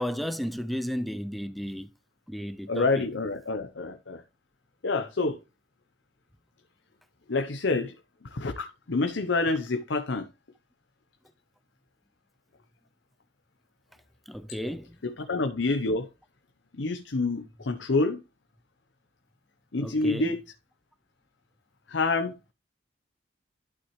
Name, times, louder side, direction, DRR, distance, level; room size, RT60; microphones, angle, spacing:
voice 1, 0.0-1.9 2.3-3.1 14.3-15.0 19.8-20.3, equal, ahead, 0.4 m, -33 dB
voice 2, 2.7-4.2 4.8-5.4 7.3-7.9 8.3-10.3 15.0-16.1 16.8-18.2 19.7-20.4 21.9-22.3, left 3 dB, 75° left, 0.8 m, -27 dB
11.5 x 5.9 x 3.1 m
head